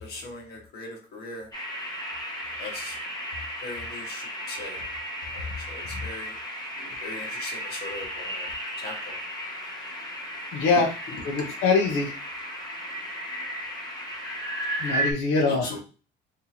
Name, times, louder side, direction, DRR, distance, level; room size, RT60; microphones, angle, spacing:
voice 1, 0.0-1.5 2.6-3.0 3.6-4.8 5.3-6.3 7.0-8.5 8.8-9.2 11.4-11.5 15.5-15.8, left 2 dB, 50° left, 1 dB, 1.3 m, -39 dB
sound 1, 1.5-15.1, right 1 dB, 20° left, 0.8 m, -34 dB
voice 2, 10.5-10.9 11.2-12.1 14.8-15.7, left 4 dB, 85° left, 0 dB, 0.8 m, -23 dB
3.8 x 2.8 x 2.8 m, 0.35 s
cardioid pair, 170°, 20 cm